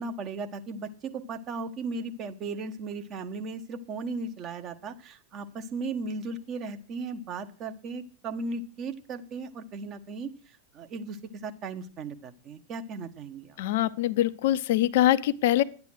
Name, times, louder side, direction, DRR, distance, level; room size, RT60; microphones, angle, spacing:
voice 1, 0.0-13.6, right 3 dB, 30° right, 1.2 m, -36 dB
voice 2, 13.6-15.6, left 13 dB, 55° left, 0.6 m, -23 dB
11.5 x 9.6 x 6.3 m
figure-of-eight pair, 90°, 0 cm